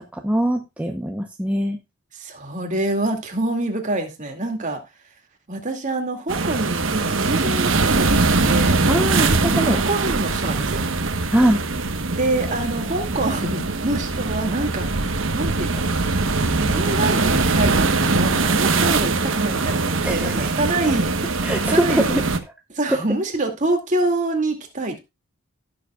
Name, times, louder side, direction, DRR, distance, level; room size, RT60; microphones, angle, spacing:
voice 1, 0.1-1.8 8.9-9.8 11.3-11.6 20.0-20.5 21.4-22.2, right 1 dB, 5° right, 3 dB, 0.8 m, -22 dB
voice 2, 2.1-4.8 5.5-8.8 9.5-10.8 12.1-15.9 16.5-22.2 22.7-25.0, right 2 dB, 35° right, 4 dB, 2.3 m, -26 dB
sound 1, 6.3-22.4, right 3 dB, 65° right, 1.1 m, -22 dB
16.0 x 7.1 x 2.3 m, 0.24 s
head